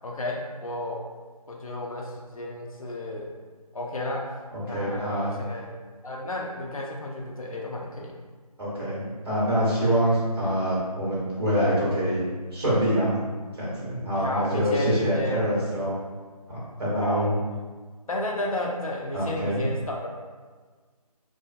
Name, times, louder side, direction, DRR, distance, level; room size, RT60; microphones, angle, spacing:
voice 1, 0.0-1.0 1.5-3.3 3.7-4.2 4.6-5.7 6.0-8.1 14.2-15.4 17.0-17.3 18.1-20.1, left 1 dB, 60° left, -1 dB, 0.5 m, -32 dB
voice 2, 4.7-5.3 8.6-12.2 12.5-13.2 13.6-16.0 16.5-17.4 19.1-19.6, equal, 40° right, -7 dB, 0.9 m, -25 dB
2.4 x 2.4 x 2.4 m, 1.5 s
figure-of-eight pair, 160°, 20 cm